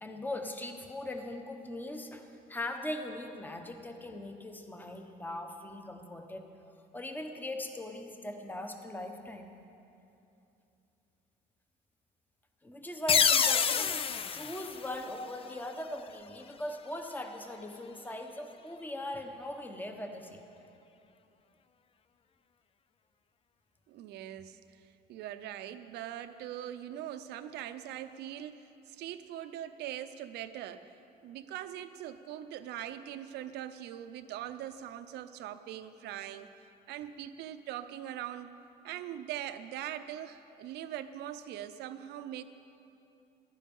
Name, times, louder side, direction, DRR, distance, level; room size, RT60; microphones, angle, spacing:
voice 1, 0.0-6.4 6.9-9.5 12.6-20.4, left 1 dB, 10° left, 4 dB, 1.2 m, -40 dB
sound 1, 13.1-15.7, left 7 dB, 35° left, 0.5 m, -28 dB
voice 2, 23.9-30.9 31.2-36.5 36.9-42.4, right 11 dB, 80° right, 11 dB, 0.7 m, -42 dB
14.5 x 11.5 x 5.5 m, 2.8 s
cardioid pair, 110°, 17 cm